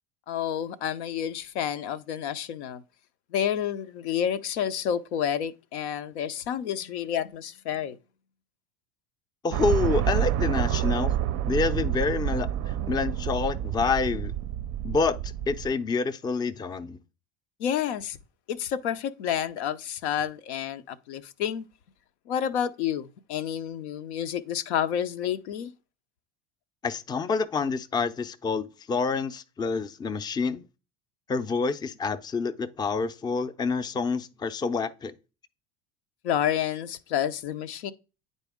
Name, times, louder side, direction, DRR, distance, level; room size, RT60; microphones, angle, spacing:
voice 1, 0.3-2.8 3.3-8.0 17.6-18.2 18.5-21.7 22.3-25.7 36.2-37.9, left 9 dB, 90° left, 0.6 m, -29 dB
voice 2, 9.4-11.1 11.5-14.3 14.8-17.0 26.8-30.6 31.3-35.1, left 4 dB, 15° left, 0.4 m, -28 dB
sound 1, 9.5-15.7, right 11 dB, 50° right, 0.4 m, -28 dB
8.9 x 4.1 x 3.5 m
supercardioid pair, 95°, 32 cm